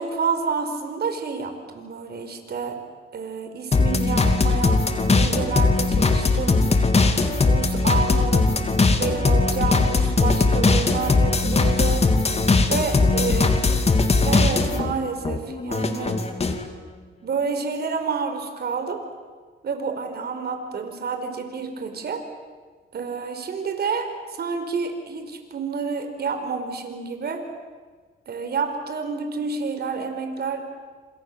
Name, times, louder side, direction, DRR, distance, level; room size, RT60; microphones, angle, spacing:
voice 1, 0.0-2.8 3.1-6.8 7.4-8.6 9.0-12.1 12.7-13.5 14.2-16.2 17.2-19.0 19.6-22.2 22.9-27.4 28.3-30.6, right 5 dB, 55° right, 6 dB, 5.1 m, -29 dB
sound 1, 3.7-14.9 15.2-16.6, left 3 dB, 30° left, 2.9 m, -20 dB
27.5 x 26.5 x 7.7 m, 1.5 s
cardioid pair, 90°, 20 cm